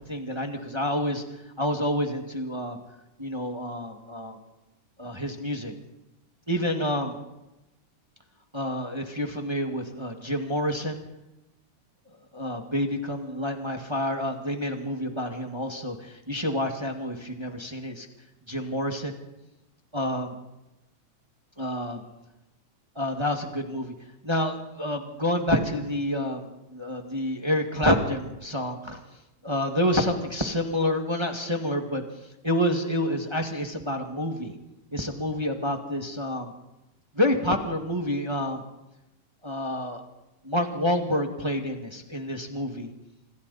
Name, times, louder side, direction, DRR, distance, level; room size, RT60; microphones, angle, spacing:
voice 1, 0.1-1.2 1.6-2.8 3.2-4.4 5.0-5.7 6.5-7.1 8.5-11.0 12.3-18.1 18.5-19.2 19.9-20.3 21.6-22.0 22.9-23.9 24.2-29.0 29.4-32.0 32.4-34.5 34.9-36.5 37.1-38.6 39.4-40.0 40.4-42.9, left 1 dB, 15° right, 3 dB, 1.1 m, -28 dB
26.5 x 26.5 x 4.2 m, 0.96 s
omnidirectional pair, 3.8 m